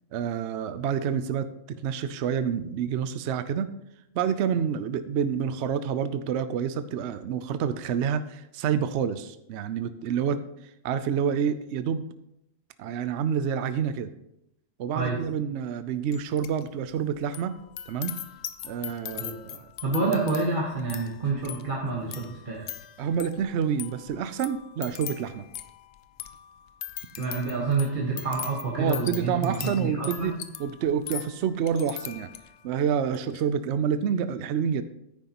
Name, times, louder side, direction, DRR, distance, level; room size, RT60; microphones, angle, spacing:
voice 1, 0.1-3.7 4.1-10.4 10.8-12.0 12.8-14.1 14.8-17.6 17.9-18.2 18.6-19.7 23.0-25.5 28.8-32.3 32.6-34.8, right 7 dB, 65° right, 12 dB, 0.8 m, -28 dB
sound 1, 16.1-16.6 16.9-32.7 33.1-33.4, left 10 dB, 85° left, 1.0 m, -41 dB
voice 2, 19.8-22.7 27.1-30.3, right 3 dB, 40° right, -3 dB, 1.5 m, -28 dB
10.5 x 9.2 x 2.9 m, 0.82 s
omnidirectional pair, 1.3 m